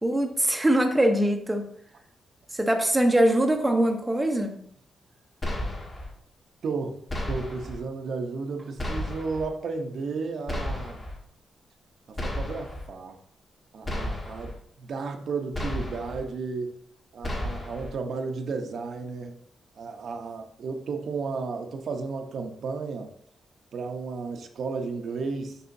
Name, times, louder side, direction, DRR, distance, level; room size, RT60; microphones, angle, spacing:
voice 1, 0.0-1.7 2.5-4.6, right 1 dB, 10° right, 3 dB, 0.7 m, -22 dB
sound 1, 5.4-6.1 7.1-7.8 8.8-9.5 10.5-11.2 12.2-12.9 13.8-14.5 15.5-16.2 17.2-17.9, left 1 dB, 30° left, 1.4 m, -32 dB
voice 2, 6.6-7.0 7.3-11.0 12.1-13.2 13.7-16.8 17.1-19.4 19.8-23.1 23.7-25.6, right 4 dB, 60° right, 4 dB, 0.7 m, -33 dB
6.8 x 5.5 x 2.6 m, 0.64 s
wide cardioid pair, 130°, 0 cm